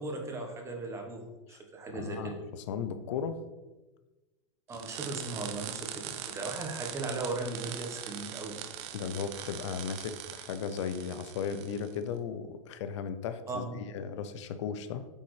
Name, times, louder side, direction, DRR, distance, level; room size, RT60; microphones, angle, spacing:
voice 1, 0.0-2.3 4.7-8.6 13.5-13.8, right 2 dB, 15° right, 2 dB, 1.1 m, -37 dB
voice 2, 1.9-3.4 8.9-13.7 13.9-15.1, left 7 dB, 65° left, 10 dB, 0.6 m, -36 dB
sound 1, 4.7-11.9, right 11 dB, 40° right, 0.5 m, -42 dB
8.1 x 4.2 x 3.2 m, 1.1 s
hypercardioid pair, 130°, 16 cm